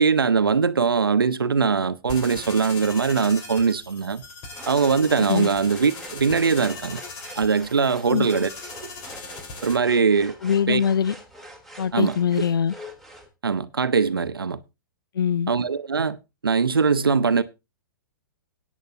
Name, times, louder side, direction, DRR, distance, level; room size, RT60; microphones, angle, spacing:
voice 1, 0.0-4.2 4.7-7.0 7.4-8.5 8.8-8.9 9.6-10.4 10.7-10.8 11.9-12.2 13.4-14.6 15.5-16.2 16.4-17.4, right 5 dB, 90° right, 0.8 m, -21 dB
sound 1, 2.1-9.8, left 3 dB, 35° left, 4.3 m, -39 dB
sound 2, 4.5-13.3, equal, ahead, 2.9 m, -44 dB
voice 2, 10.4-11.1 11.8-12.7 15.1-15.5, left 8 dB, 75° left, 0.5 m, -22 dB
16.5 x 9.2 x 2.7 m
hypercardioid pair, 115°, 12 cm